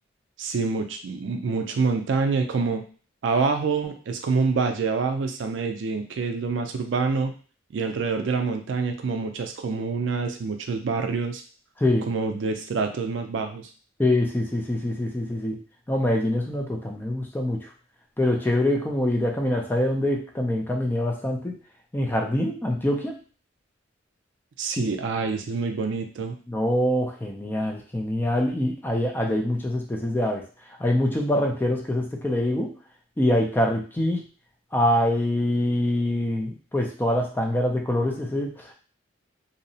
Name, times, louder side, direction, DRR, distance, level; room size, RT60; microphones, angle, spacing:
voice 1, 0.4-2.8 3.2-7.3 7.7-11.4 12.1-13.7 24.6-26.4, right 4 dB, 65° right, 5 dB, 0.4 m, -26 dB
voice 2, 14.0-15.6 15.9-17.7 18.2-21.6 21.9-23.1 26.5-30.4 30.8-32.7 33.2-34.2 34.7-38.7, left 1 dB, 10° left, 1 dB, 0.3 m, -24 dB
2.7 x 2.0 x 2.7 m, 0.39 s
head